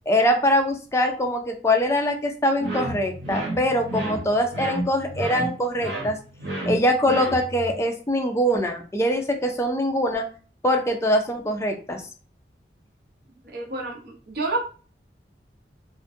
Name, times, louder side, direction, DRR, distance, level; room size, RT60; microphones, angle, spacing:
voice 1, 0.1-6.2 6.7-10.2 10.6-12.0, equal, 15° left, 3 dB, 0.3 m, -23 dB
sound 1, 2.6-7.7, right 2 dB, 85° right, 0.9 m, -31 dB
voice 2, 13.4-14.6, right 2 dB, 60° right, 0 dB, 0.7 m, -29 dB
2.4 x 2.1 x 2.6 m, 0.38 s
head